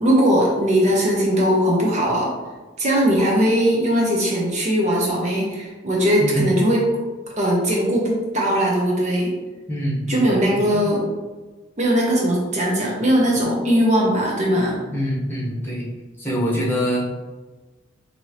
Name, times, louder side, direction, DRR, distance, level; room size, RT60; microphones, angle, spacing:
voice 1, 0.0-2.3 2.8-6.8 7.4-9.3 10.1-11.0 11.8-14.8, equal, 40° right, -3 dB, 0.6 m, -19 dB
voice 2, 9.7-10.8 14.9-15.9 16.2-17.1, equal, 10° left, -6 dB, 1.1 m, -25 dB
4.2 x 2.7 x 3.1 m, 1.3 s
head